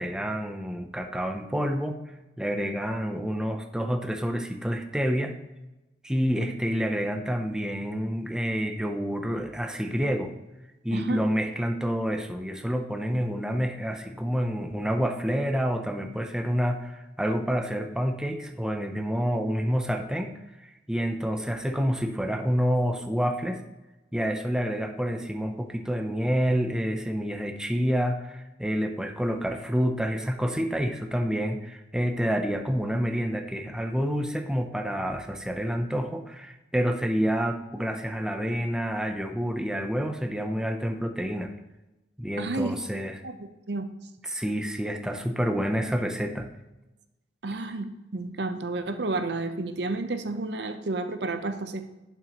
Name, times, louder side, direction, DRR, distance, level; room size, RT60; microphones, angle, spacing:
voice 1, 0.0-2.0 2.4-5.3 6.0-10.3 10.8-23.6 24.1-41.5 42.2-43.2 44.2-46.5, equal, 5° right, 4 dB, 0.5 m, -28 dB
voice 2, 10.9-11.2 42.4-42.8 43.2-43.8 47.4-47.9 48.1-51.8, right 2 dB, 70° right, 8 dB, 0.7 m, -31 dB
11.0 x 5.7 x 2.9 m, 1.0 s
head